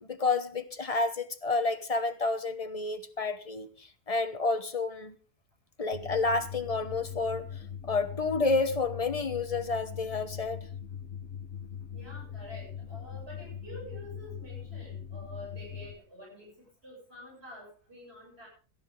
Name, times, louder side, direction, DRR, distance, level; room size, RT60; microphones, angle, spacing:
voice 1, 0.0-5.1 5.8-10.6, left 3 dB, 25° left, 1.1 m, -30 dB
sound 1, 5.9-15.9, left 8 dB, 60° left, 1.9 m, -41 dB
voice 2, 11.9-18.5, left 1 dB, 45° right, 8.0 m, -48 dB
17.5 x 12.5 x 3.8 m
omnidirectional pair, 1.5 m